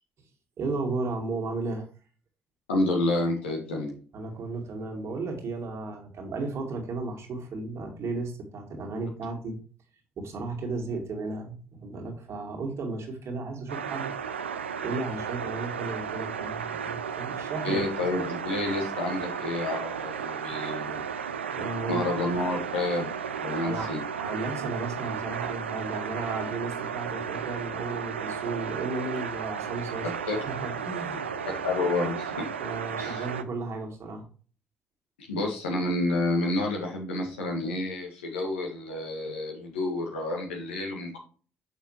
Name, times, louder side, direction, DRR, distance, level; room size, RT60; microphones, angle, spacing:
voice 1, 0.6-1.9 4.1-9.6 10.2-14.1 14.8-18.1 21.5-22.0 23.6-23.9 24.2-31.2 32.6-34.2, right 3 dB, 50° right, 2 dB, 2.3 m, -34 dB
voice 2, 2.7-3.9 17.6-21.0 21.9-23.1 23.4-24.0 30.3-30.4 31.6-32.4 33.0-33.2 35.3-41.2, left 2 dB, 75° left, -1 dB, 1.9 m, -29 dB
sound 1, 13.7-33.4, right 7 dB, 80° right, 0.4 m, -34 dB
6.9 x 6.3 x 3.2 m, 0.39 s
figure-of-eight pair, 45°, 6 cm